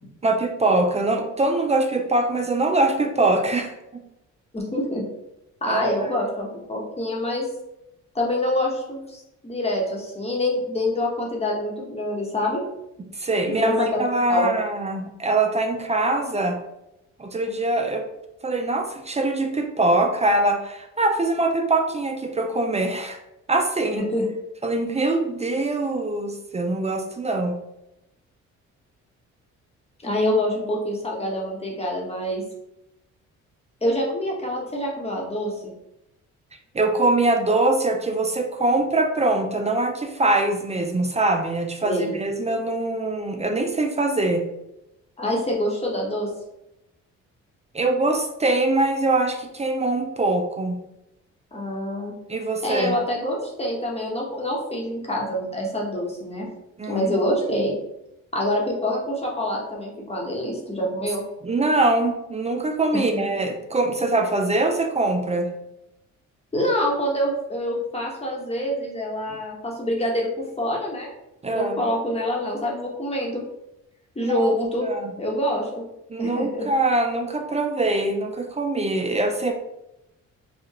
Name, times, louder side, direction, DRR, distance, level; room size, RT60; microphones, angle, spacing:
voice 1, 0.2-4.0 5.7-6.1 13.1-16.6 17.2-18.0 18.4-23.2 23.5-24.0 24.6-27.6 36.7-44.4 47.7-50.8 52.3-53.0 56.8-57.1 61.4-65.5 71.4-71.8 74.2-74.5 74.8-75.1 76.1-79.5, right 2 dB, 20° right, 4 dB, 0.5 m, -23 dB
voice 2, 4.5-5.0 5.6-7.5 8.1-12.6 13.6-14.0 14.3-14.5 24.0-24.3 30.0-32.4 33.8-35.5 41.8-42.1 45.2-46.3 51.5-52.1 52.6-56.5 56.9-57.8 58.3-61.2 62.9-63.0 66.5-70.3 70.6-71.1 71.5-73.4 74.1-74.9 75.2-75.8 76.2-76.7, left 1 dB, 20° left, -2 dB, 1.2 m, -26 dB
4.7 x 2.4 x 2.9 m, 0.87 s
cardioid pair, 90°, 30 cm